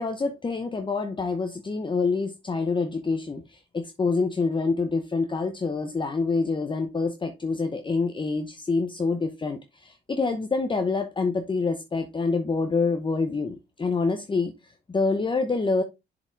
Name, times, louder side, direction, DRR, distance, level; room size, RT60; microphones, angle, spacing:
voice 1, 0.0-15.8, left 4 dB, 25° left, 0.9 m, -26 dB
6.9 x 5.1 x 3.4 m
cardioid pair, 90°, 20 cm